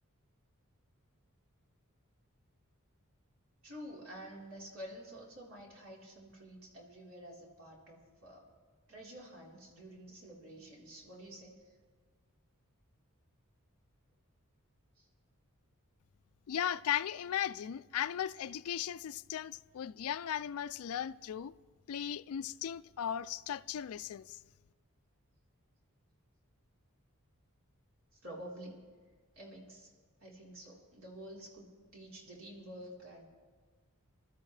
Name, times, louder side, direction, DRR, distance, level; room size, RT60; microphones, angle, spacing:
voice 1, 3.6-8.5 8.9-11.6 15.0-15.1 28.1-28.8 29.3-29.9 30.2-31.7 31.9-33.2, equal, 70° right, 4.0 m, -49 dB
voice 2, 16.5-21.5 21.9-24.4, left 9 dB, 75° left, 0.4 m, -37 dB
27.5 x 13.0 x 3.3 m
head